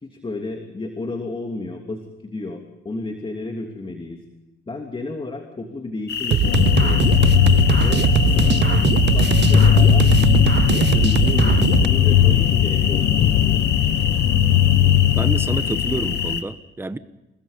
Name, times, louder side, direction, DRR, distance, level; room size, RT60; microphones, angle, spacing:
voice 1, 0.0-4.2 4.7-7.4 7.8-13.7, left 2 dB, 25° left, 4 dB, 3.0 m, -32 dB
sound 1, 6.1-16.4, left 6 dB, 55° left, 2.4 m, -27 dB
sound 2, 6.3-11.9, right 11 dB, 60° right, 0.8 m, -20 dB
sound 3, 6.4-16.4, left 11 dB, 80° left, 1.0 m, -18 dB
voice 2, 15.2-17.0, right 2 dB, 10° right, 11 dB, 1.2 m, -28 dB
28.5 x 21.0 x 5.3 m, 0.98 s
cardioid pair, 90°, 20 cm